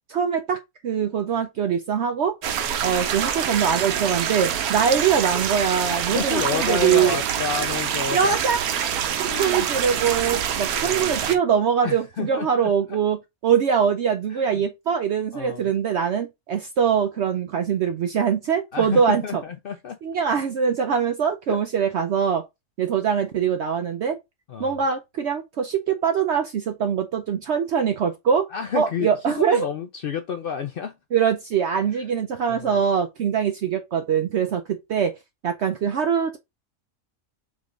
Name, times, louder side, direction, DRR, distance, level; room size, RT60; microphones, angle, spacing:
voice 1, 0.1-2.4 2.8-7.2 8.1-8.6 9.2-13.2 13.4-19.4 20.0-22.4 22.8-24.2 24.6-28.5 28.7-29.7 31.1-35.1 35.4-36.4, right 7 dB, 65° right, 0.7 m, -23 dB
sound 1, 2.4-11.4, right 8 dB, 85° right, 1.2 m, -26 dB
voice 2, 5.9-8.4 9.2-9.7 10.8-11.4 11.8-13.0 14.3-14.6 15.3-15.7 18.7-20.0 21.5-21.6 24.5-24.8 28.5-31.0 31.9-32.1 32.5-32.9, left 7 dB, 75° left, 0.5 m, -30 dB
3.7 x 3.5 x 3.8 m
omnidirectional pair, 1.5 m